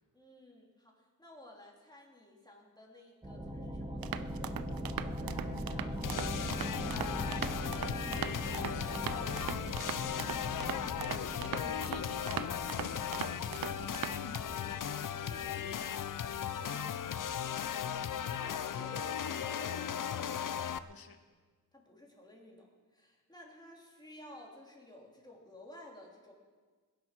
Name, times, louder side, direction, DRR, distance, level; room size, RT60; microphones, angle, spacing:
voice 1, 0.1-4.0 15.1-16.0 16.5-16.9 18.3-20.2 21.7-26.3, left 1 dB, 10° left, -2 dB, 3.2 m, -54 dB
sound 1, 3.2-18.6, equal, 15° right, 2.2 m, -42 dB
sound 2, 4.0-14.4, right 10 dB, 80° right, 0.6 m, -41 dB
voice 2, 5.2-7.5 8.0-9.4 9.9-14.6 16.6-16.7 20.8-21.2, left 6 dB, 80° left, 7 dB, 1.4 m, -50 dB
sound 3, 6.0-20.8, left 9 dB, 65° left, 0.6 m, -37 dB
21.5 x 10.5 x 6.0 m, 1.5 s
wide cardioid pair, 120°, 35 cm